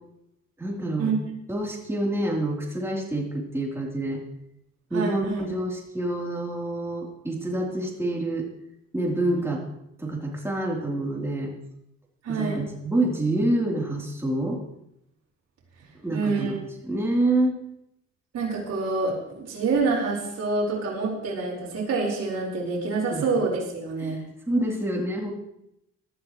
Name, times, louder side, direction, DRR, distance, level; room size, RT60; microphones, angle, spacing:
voice 1, 0.6-1.1 1.5-4.2 4.9-8.5 8.9-9.6 10.0-11.5 12.3-14.6 16.0-17.5 23.1-23.2 24.0-24.2 24.5-25.3, right 1 dB, 10° right, -2 dB, 3.6 m, -27 dB
voice 2, 4.9-5.4 12.2-12.6 16.1-16.5 18.3-24.2, right 4 dB, 60° right, -5 dB, 4.9 m, -27 dB
17.5 x 12.5 x 3.2 m, 0.81 s
cardioid pair, 90°, 30 cm